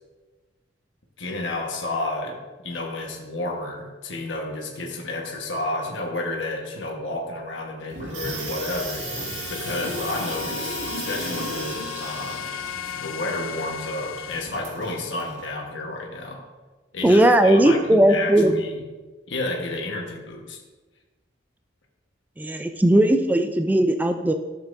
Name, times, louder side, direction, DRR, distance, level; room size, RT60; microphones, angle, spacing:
voice 1, 1.2-2.4 2.6-9.1 9.5-12.5 13.0-16.4 16.9-18.8 19.3-20.6, left 2 dB, 70° left, 1 dB, 1.2 m, -31 dB
Water tap faucet / Sink (filling or washing), 7.9-15.5, right 3 dB, 85° right, 1.9 m, -35 dB
sound 1, 8.5-14.4, left 7 dB, 90° left, 0.5 m, -35 dB
voice 2, 17.0-18.6 22.4-24.3, right 1 dB, 10° right, 7 dB, 0.3 m, -18 dB
13.0 x 7.2 x 2.6 m, 1.3 s
head